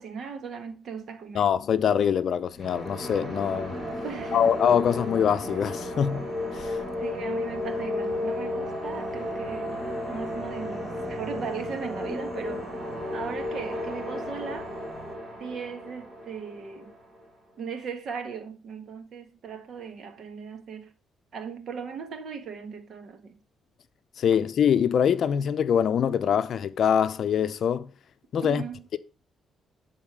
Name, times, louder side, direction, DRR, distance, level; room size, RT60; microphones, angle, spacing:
voice 1, 0.0-1.5 4.0-4.6 7.0-9.8 10.1-12.7 13.1-14.7 15.4-17.0 17.6-20.9 21.3-23.4 28.4-28.9, right 6 dB, 55° right, 1.7 m, -38 dB
voice 2, 1.3-3.8 4.3-6.3 6.5-6.8 24.2-27.9 28.3-28.6, left 8 dB, 60° left, 0.6 m, -24 dB
Singing, 2.5-15.2, left 2 dB, 10° left, 2.3 m, -43 dB
sound 1, 2.6-17.3, left 1 dB, 30° right, 3.5 m, -34 dB
11.0 x 4.1 x 6.1 m
cardioid pair, 115°, 0 cm